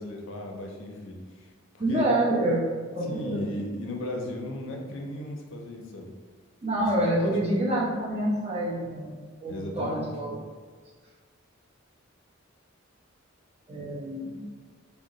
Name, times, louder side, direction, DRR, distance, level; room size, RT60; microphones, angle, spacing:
voice 1, 0.0-1.5 1.7-2.1 3.1-6.1 7.0-7.4 9.5-10.5, left 1 dB, 65° left, 1 dB, 0.4 m, -36 dB
voice 2, 1.8-3.4 6.6-9.1 9.4-10.4 13.7-14.4, right 1 dB, 30° right, -6 dB, 0.8 m, -27 dB
2.8 x 2.1 x 3.7 m, 1.5 s
head